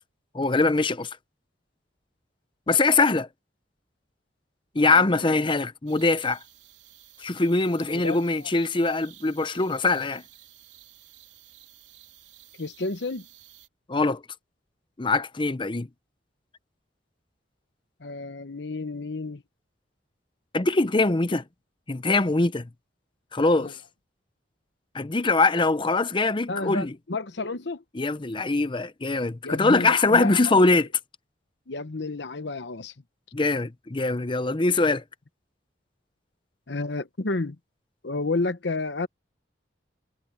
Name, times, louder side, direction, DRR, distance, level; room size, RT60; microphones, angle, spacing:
voice 1, 0.3-1.1 2.7-3.3 4.7-6.4 7.2-10.2 13.9-14.2 15.0-15.9 20.5-21.4 21.9-22.7 23.3-23.8 24.9-26.9 27.9-30.9 33.3-35.0, left 3 dB, 25° left, 0.7 m, -22 dB
voice 2, 4.8-5.5 7.9-8.2 12.6-13.3 18.0-19.4 23.6-23.7 26.5-27.8 29.4-30.5 31.7-32.9 36.7-37.6 38.0-39.1, left 3 dB, 70° left, 1.0 m, -31 dB
sound 1, 5.9-13.7, right 12 dB, 80° right, 3.4 m, -53 dB
head